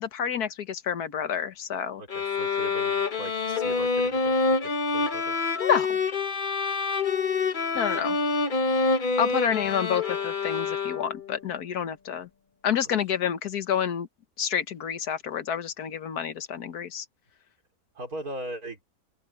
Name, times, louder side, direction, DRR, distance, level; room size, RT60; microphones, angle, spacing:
voice 1, 0.0-2.0 5.6-6.0 7.7-8.2 9.2-12.3 12.6-14.1 14.4-17.0, left 8 dB, 80° left, 1.7 m, -28 dB
voice 2, 2.0-4.3 4.6-5.4 9.6-9.7 12.8-13.0 17.9-18.8, right 1 dB, 70° right, 4.7 m, -39 dB
sound 1, 2.1-11.3, left 4 dB, 35° left, 1.0 m, -27 dB
open air
omnidirectional pair, 1.6 m